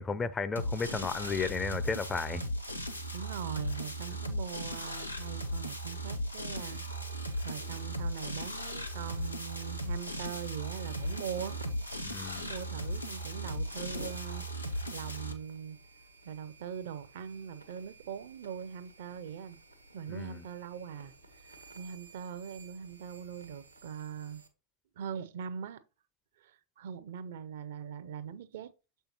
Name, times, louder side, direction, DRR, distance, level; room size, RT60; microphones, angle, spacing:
voice 1, 0.0-2.5 12.0-12.5 20.1-20.4, left 5 dB, 15° left, 0.5 m, -34 dB
sound 1, 0.6-15.3, equal, 90° left, 0.8 m, -37 dB
voice 2, 3.1-6.8 7.4-11.6 12.4-14.5 14.9-15.8 16.2-19.6 19.9-21.1 21.4-24.4 25.0-25.8 26.4-28.7, right 8 dB, 55° right, 0.6 m, -41 dB
sound 2, 6.5-24.5, right 2 dB, 90° right, 1.1 m, -54 dB
6.8 x 5.6 x 2.9 m
figure-of-eight pair, 90°, 0 cm